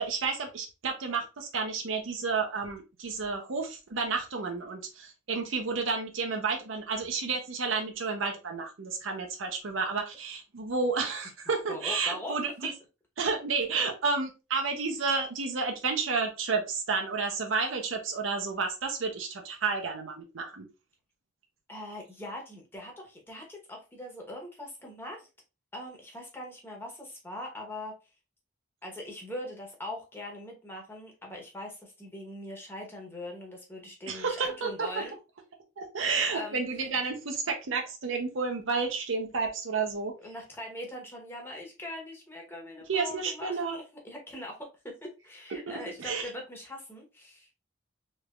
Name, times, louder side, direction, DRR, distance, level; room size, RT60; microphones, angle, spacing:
voice 1, 0.0-12.7 13.2-20.7 34.1-35.0 35.8-40.1 42.9-43.8 45.7-46.3, right 4 dB, 80° right, 4 dB, 0.7 m, -31 dB
voice 2, 11.7-12.4 21.7-25.3 25.7-27.9 28.8-35.2 36.3-36.6 36.9-37.0 40.2-47.5, left 1 dB, 10° left, 0 dB, 0.9 m, -41 dB
3.3 x 3.1 x 2.3 m, 0.28 s
head